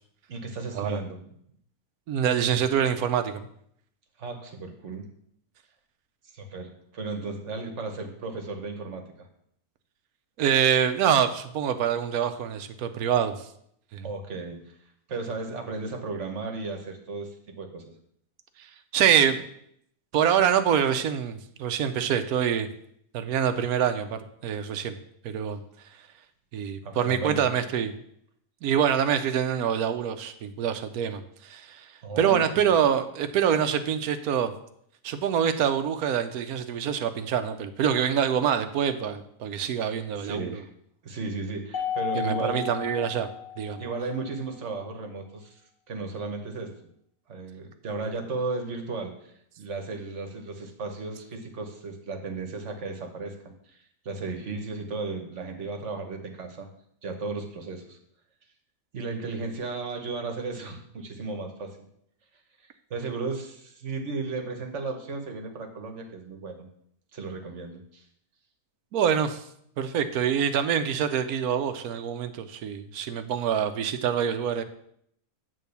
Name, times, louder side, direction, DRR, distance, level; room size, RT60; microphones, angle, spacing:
voice 1, 0.3-1.3 4.2-5.1 6.3-9.3 14.0-14.7 15.1-17.8 26.8-27.4 32.0-32.4 40.2-40.6 41.0-42.6 43.8-45.6 45.9-46.7 47.3-53.8 54.0-56.7 57.0-58.0 58.9-61.9 62.9-66.7 67.1-68.0, right 3 dB, 55° right, 4 dB, 1.3 m, -35 dB
voice 2, 2.1-3.5 10.4-13.4 13.9-14.1 18.9-19.4 20.1-22.7 23.1-24.9 25.2-25.6 26.5-27.9 28.6-31.2 31.5-31.8 32.2-34.5 35.0-40.6 42.1-43.3 43.6-43.8 68.9-69.4 69.8-74.6, right 8 dB, 75° right, 9 dB, 1.1 m, -25 dB
Mallet percussion, 41.7-44.2, left 9 dB, 60° left, 1.2 m, -33 dB
8.5 x 3.7 x 6.8 m, 0.70 s
omnidirectional pair, 1.6 m